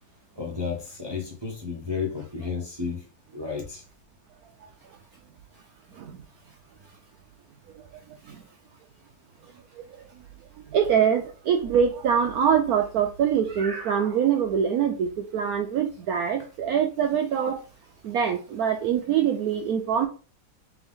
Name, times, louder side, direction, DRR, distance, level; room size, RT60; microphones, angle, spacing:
voice 1, 0.4-3.0 3.3-3.8, left 5 dB, 30° right, 0.5 m, -32 dB
voice 2, 10.7-17.6 18.0-20.1, right 8 dB, 80° right, 0.8 m, -24 dB
3.6 x 3.4 x 3.5 m
omnidirectional pair, 2.1 m